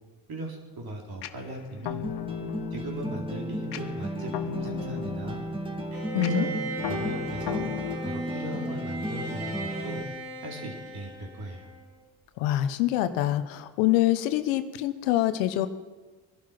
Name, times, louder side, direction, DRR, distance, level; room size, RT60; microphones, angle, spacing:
voice 1, 0.3-2.0 2.7-5.4 6.2-6.5 6.9-7.6 8.0-10.0 10.4-11.7, right 1 dB, 55° right, 0 dB, 4.2 m, -38 dB
sound 1, 1.2-8.0, left 12 dB, 65° left, 0.9 m, -38 dB
sound 2, 2.0-10.0, equal, 10° right, 2.4 m, -34 dB
Bowed string instrument, 5.9-12.0, right 3 dB, 85° right, 4.9 m, -38 dB
voice 2, 6.1-6.5 12.4-15.7, left 13 dB, 90° left, 11 dB, 1.0 m, -25 dB
20.5 x 12.0 x 6.0 m, 1.2 s
hypercardioid pair, 50°, 44 cm